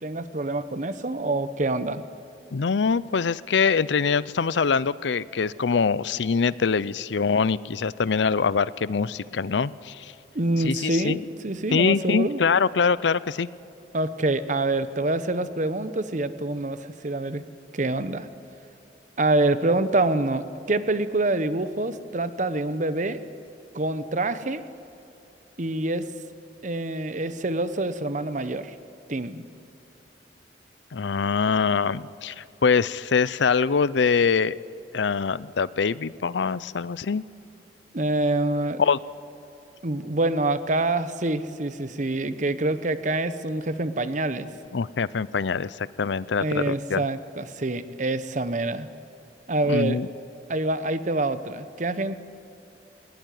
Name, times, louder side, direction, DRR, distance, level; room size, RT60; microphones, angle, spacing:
voice 1, 0.0-2.0 10.3-12.4 13.9-17.4 17.7-18.3 19.2-23.2 23.7-24.6 25.6-26.1 26.6-28.7 29.1-29.5 37.9-38.8 39.8-44.5 46.4-48.9 49.5-50.0 50.5-52.2, right 2 dB, 45° right, 12 dB, 1.0 m, -26 dB
voice 2, 2.5-10.1 10.6-11.2 11.7-13.5 30.9-34.6 34.9-37.2 38.8-39.0 44.7-47.0 49.7-50.1, left 5 dB, 85° left, 19 dB, 0.5 m, -24 dB
20.0 x 19.5 x 9.4 m, 2.9 s
head